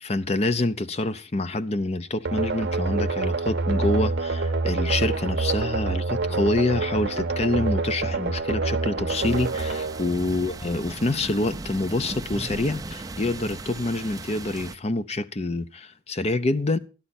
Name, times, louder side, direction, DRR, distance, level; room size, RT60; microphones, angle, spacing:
voice 1, 0.0-16.8, left 2 dB, 35° left, 0.6 m, -26 dB
sound 1, 2.2-10.9, right 3 dB, 60° right, 0.7 m, -27 dB
sound 2, 9.1-14.8, right 2 dB, 20° right, 0.5 m, -37 dB
12.0 x 11.5 x 4.2 m
head